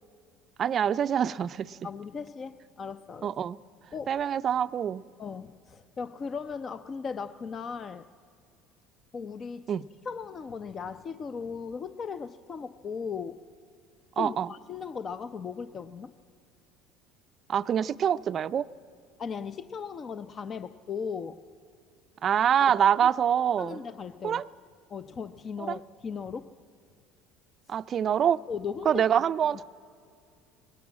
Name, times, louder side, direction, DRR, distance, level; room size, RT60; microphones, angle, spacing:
voice 1, 0.6-1.8 3.2-3.6 4.1-5.0 9.7-9.8 14.2-14.5 17.5-18.7 22.2-23.8 24.2-24.4 25.6-25.8 27.7-28.4 28.9-29.6, right 9 dB, 45° right, 0.4 m, -25 dB
voice 2, 1.8-3.3 3.9-4.2 5.2-8.1 9.1-9.6 10.1-13.4 14.2-16.1 19.2-21.4 23.6-24.4 24.9-26.5 28.5-29.0, left 6 dB, 35° left, 0.5 m, -37 dB
20.5 x 17.5 x 7.4 m
supercardioid pair, 95°, 0 cm